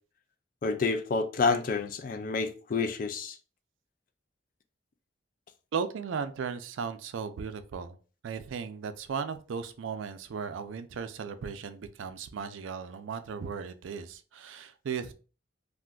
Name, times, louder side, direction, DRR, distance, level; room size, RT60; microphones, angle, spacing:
voice 1, 0.6-3.4, left 4 dB, 45° left, 0.3 m, -29 dB
voice 2, 5.7-8.0 8.2-15.1, right 6 dB, 85° right, 0.4 m, -36 dB
2.4 x 2.3 x 3.6 m
head